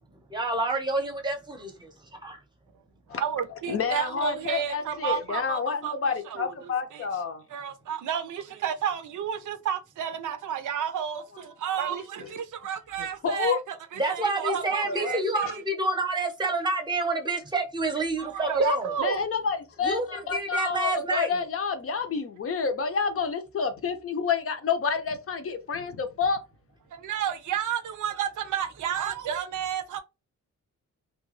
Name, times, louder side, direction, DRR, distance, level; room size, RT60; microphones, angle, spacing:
voice 1, 0.3-1.9 2.2-2.4 14.0-18.9 19.8-21.4, right 2 dB, 15° right, 0.8 m, -28 dB
voice 2, 3.1-6.5 6.9-7.1 7.5-15.6 18.2-19.2 26.9-30.0, right 8 dB, 75° right, 0.6 m, -31 dB
voice 3, 3.7-7.4 11.7-12.3 13.0-13.6 14.8-15.2 19.0-26.4, left 5 dB, 45° left, 0.6 m, -29 dB
2.3 x 2.3 x 3.1 m
wide cardioid pair, 145°, 30 cm